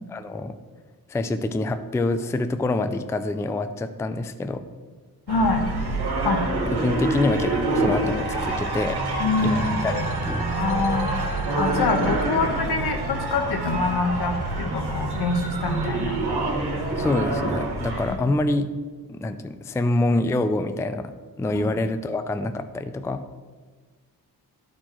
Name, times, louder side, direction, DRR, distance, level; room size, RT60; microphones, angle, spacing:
voice 1, 0.1-0.5 1.1-4.6 6.8-9.0 9.4-10.4 17.0-18.7 19.1-21.1 21.4-23.2, left 2 dB, 10° left, 9 dB, 0.3 m, -26 dB
voice 2, 5.3-5.7 6.2-6.4 7.8-7.9 9.2-9.8 10.6-11.1 11.6-16.2 21.5-21.7, left 3 dB, 80° left, 4 dB, 1.2 m, -25 dB
sound 1, 5.3-18.1, right 2 dB, 85° right, 1.6 m, -26 dB
11.5 x 4.4 x 4.4 m, 1.4 s
cardioid pair, 100°, 38 cm